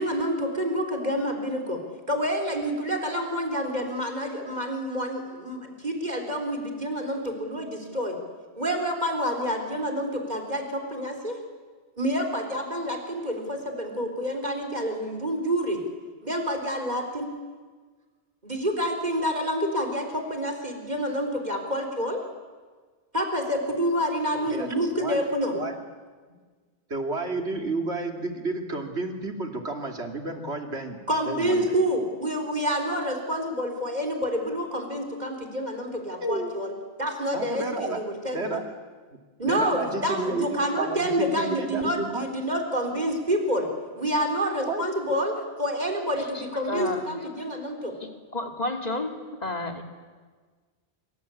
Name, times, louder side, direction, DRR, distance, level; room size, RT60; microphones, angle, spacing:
voice 1, 0.0-1.8 2.1-8.2 8.6-11.4 12.0-15.8 16.2-17.3 18.4-22.2 23.1-25.5 31.1-36.7 37.0-38.6 39.4-43.7 44.0-47.9, equal, 40° right, 4 dB, 4.2 m, -28 dB
voice 2, 24.3-25.2 25.5-25.7 26.9-31.0 31.2-31.7 36.2-36.5 37.3-38.0 38.3-38.6 39.4-42.3 44.7-44.9, right 2 dB, 85° right, 4 dB, 3.1 m, -31 dB
voice 3, 46.7-47.0 48.3-49.1 49.4-49.8, left 2 dB, 40° left, 4 dB, 2.8 m, -30 dB
26.5 x 24.5 x 8.6 m, 1.5 s
omnidirectional pair, 1.1 m